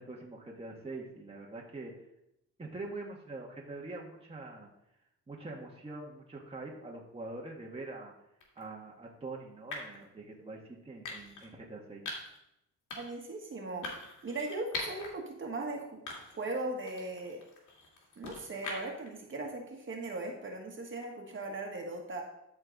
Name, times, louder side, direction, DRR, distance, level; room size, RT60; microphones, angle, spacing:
voice 1, 0.0-1.9 2.6-4.7 5.3-8.1 8.5-12.0, right 2 dB, 20° right, -2 dB, 1.6 m, -44 dB
sound 1, 8.4-8.6 9.7-10.0 11.0-11.5 12.1-12.4 12.9-13.2 13.8-15.1 15.5-15.6 16.1-16.5 16.9-19.1, left 3 dB, 85° left, 2.3 m, -42 dB
voice 2, 13.0-16.0 16.4-17.4 18.2-22.2, right 2 dB, 40° right, 1 dB, 1.8 m, -38 dB
12.0 x 4.4 x 4.1 m, 0.81 s
cardioid pair, 90°, 30 cm